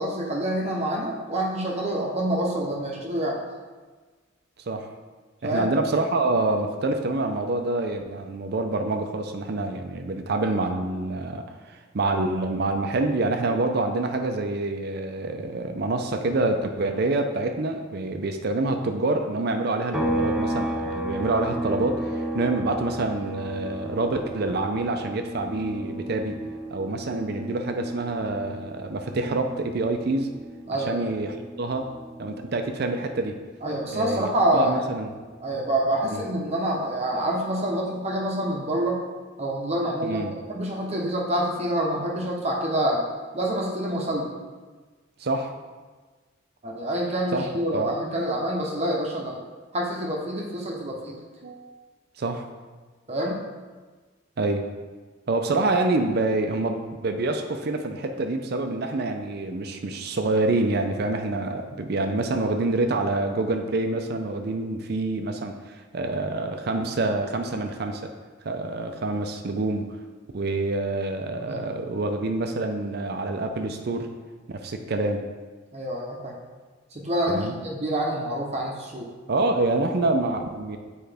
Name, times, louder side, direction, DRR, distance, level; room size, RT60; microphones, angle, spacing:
voice 1, 0.0-3.4 5.4-5.7 30.7-31.0 33.6-34.9 35.4-39.0 39.4-40.2 40.5-43.0 43.3-44.3 46.6-49.4 49.7-51.2 53.1-53.4 71.3-71.6 75.7-76.3 76.9-79.1, right 1 dB, 35° right, -1 dB, 0.8 m, -27 dB
voice 2, 5.4-26.4 26.7-30.3 30.9-31.9 32.2-33.4 33.9-35.1 36.1-36.2 40.0-40.4 45.2-45.5 47.3-47.9 51.4-51.7 52.2-52.4 54.4-54.7 55.3-68.1 68.4-69.9 70.3-74.1 74.5-75.2 77.3-77.5 79.3-80.8, right 2 dB, 55° right, 5 dB, 0.5 m, -27 dB
sound 1, 19.9-33.5 33.8-36.0, right 1 dB, 5° right, 0.6 m, -34 dB
7.8 x 4.7 x 3.4 m, 1.4 s
head